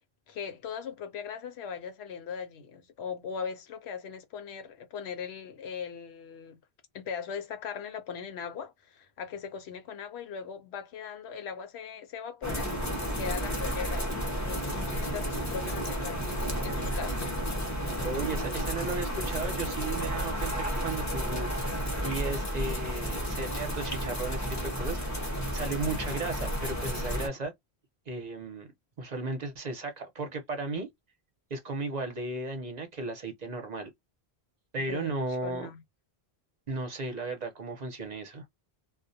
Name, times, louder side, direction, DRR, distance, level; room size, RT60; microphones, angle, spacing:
voice 1, 0.3-6.6 6.9-12.8 13.0-16.2 16.6-17.3 34.8-35.1 35.4-35.8, left 6 dB, 90° left, 0.9 m, -39 dB
sound 1, 12.4-27.3, equal, 20° left, 0.5 m, -32 dB
voice 2, 18.0-25.2 25.5-27.5 28.1-28.7 29.0-30.9 31.5-33.9 34.7-35.7 36.7-38.4, right 3 dB, 45° right, 0.7 m, -35 dB
2.2 x 2.1 x 2.6 m
omnidirectional pair, 1.1 m